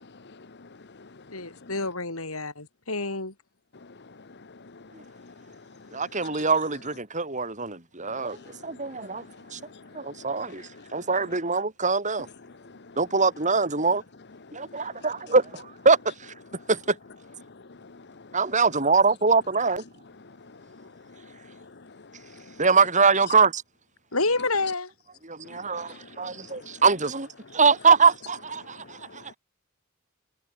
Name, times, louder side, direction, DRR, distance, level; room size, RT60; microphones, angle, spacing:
voice 1, 0.3-0.7 4.7-4.8 5.2-5.5 6.1-6.5 8.2-8.6 9.2-9.8 10.3-10.8 14.8-14.9 17.8-17.9 22.3-22.4 25.7-26.1 26.6-26.7, left 4 dB, 55° left, 1.1 m, -48 dB
voice 2, 1.3-3.3 24.1-24.9, left 3 dB, 90° left, 8.0 m, -28 dB
voice 3, 5.9-8.4 8.6-9.2 9.5-9.6 9.9-10.6 10.9-12.3 13.0-14.0 14.5-16.0 16.7-16.8 18.3-19.8 22.6-23.6 25.2-27.3 27.5-29.0, right 4 dB, 35° right, 6.7 m, -23 dB
head